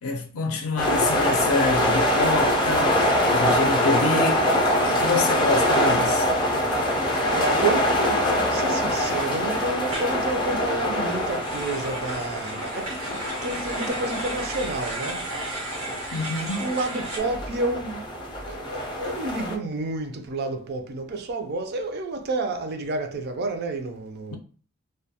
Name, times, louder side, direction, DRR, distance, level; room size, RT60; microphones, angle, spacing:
voice 1, 0.0-4.5 4.8-6.3 16.1-16.7 24.3-24.4, left 3 dB, 85° left, 0.5 m, -27 dB
sound 1, 0.8-19.6, left 1 dB, 20° left, 0.4 m, -24 dB
voice 2, 7.2-15.3 16.6-24.4, right 2 dB, 50° right, 0.4 m, -30 dB
sound 2, 9.9-10.1 10.9-17.2, right 2 dB, 90° right, 1.1 m, -35 dB
2.2 x 2.2 x 2.8 m
head